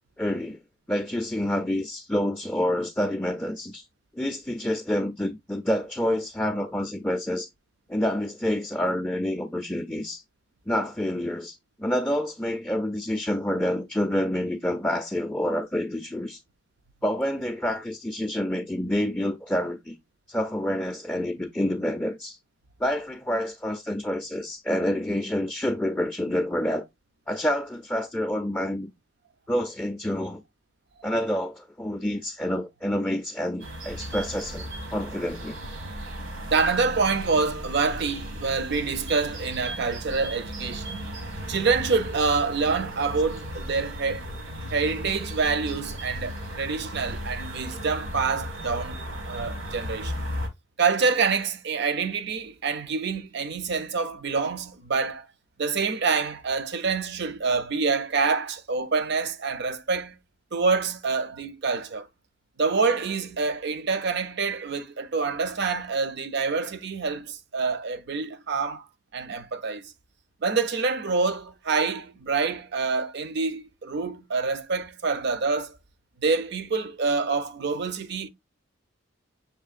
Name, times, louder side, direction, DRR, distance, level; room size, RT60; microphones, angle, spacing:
voice 1, 0.2-0.6 0.9-3.8 4.1-7.5 7.9-10.2 10.7-16.4 17.0-20.0 20.3-22.4 22.8-26.9 27.3-28.9 29.5-30.4 31.0-35.6, left 1 dB, 5° left, 0.4 m, -28 dB
sound 1, 33.6-50.5, equal, 80° right, 1.5 m, -36 dB
voice 2, 36.5-41.0 41.5-44.2 44.7-49.0 49.3-50.3 50.8-55.3 55.6-60.2 60.5-62.1 62.6-68.9 69.1-69.9 70.4-75.8 76.2-78.3, right 4 dB, 55° right, 0.5 m, -26 dB
6.5 x 3.1 x 2.4 m
head